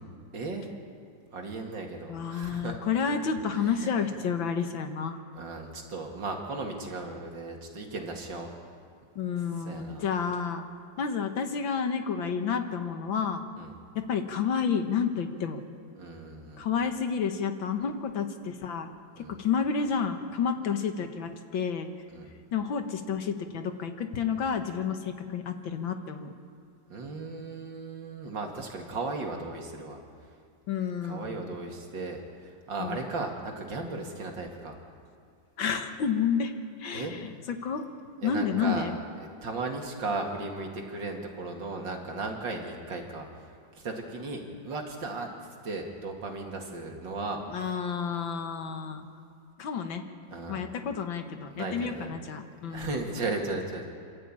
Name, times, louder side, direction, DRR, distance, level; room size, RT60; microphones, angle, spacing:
voice 1, 0.3-0.7 1.3-2.8 3.5-4.1 5.3-8.5 9.6-10.1 13.6-13.7 16.0-16.7 19.2-19.4 22.1-22.3 26.9-30.0 31.0-34.8 36.9-37.2 38.2-38.9 39.2-43.5 43.7-45.3 45.6-47.8 50.3-50.7 51.5-52.2 52.7-53.9, right 3 dB, 70° right, 2 dB, 3.0 m, -36 dB
voice 2, 2.1-5.2 9.2-10.7 11.0-13.4 14.0-15.6 16.6-18.9 19.2-21.9 22.5-26.3 30.7-31.5 32.8-33.0 35.6-36.5 36.8-37.9 38.2-38.9 47.5-49.1 49.6-50.0 50.5-52.9, left 6 dB, 80° left, 7 dB, 2.1 m, -30 dB
27.0 x 13.0 x 8.8 m, 2.4 s
omnidirectional pair, 2.1 m